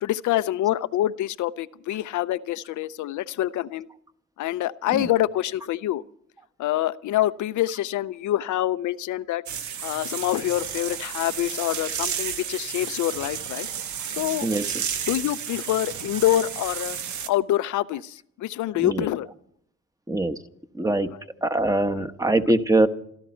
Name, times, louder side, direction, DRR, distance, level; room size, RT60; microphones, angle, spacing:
voice 1, 0.0-3.9 4.4-6.0 6.6-9.4 9.8-13.7 14.2-14.5 15.1-17.0 17.3-19.3, left 13 dB, 75° left, 15 dB, 0.6 m, -26 dB
sound 1, 9.5-17.3, right 8 dB, 70° right, 1.1 m, -32 dB
voice 2, 14.4-14.8 18.8-19.1 20.1-20.4 20.7-21.1 21.4-22.9, right 2 dB, 10° right, 9 dB, 1.1 m, -23 dB
27.5 x 11.5 x 4.4 m, 0.69 s
cardioid pair, 90°, 30 cm